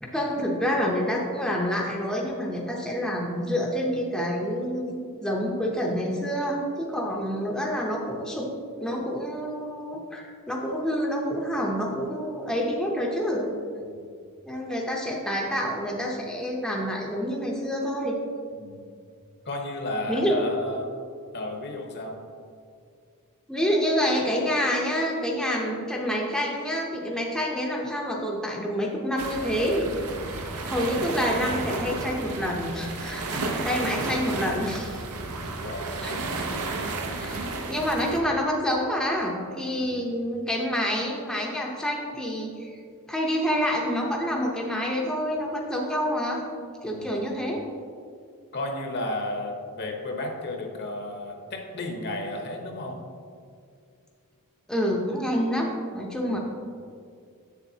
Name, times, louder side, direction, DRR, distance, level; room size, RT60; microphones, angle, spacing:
voice 1, 0.0-8.5 8.8-13.4 14.5-18.2 20.1-20.3 23.5-30.0 30.3-35.0 36.0-36.2 37.2-42.7 43.1-46.4 46.8-47.6 54.7-56.4, equal, 5° left, -2 dB, 0.6 m, -27 dB
voice 2, 18.5-18.8 19.4-20.9 21.3-22.2 35.6-36.3 39.8-40.1 46.9-47.2 48.5-53.0 56.2-56.4, left 1 dB, 50° left, 2 dB, 0.9 m, -33 dB
sound 1, 29.2-38.2, right 3 dB, 80° right, 0.7 m, -32 dB
7.7 x 7.0 x 2.8 m, 2.3 s
head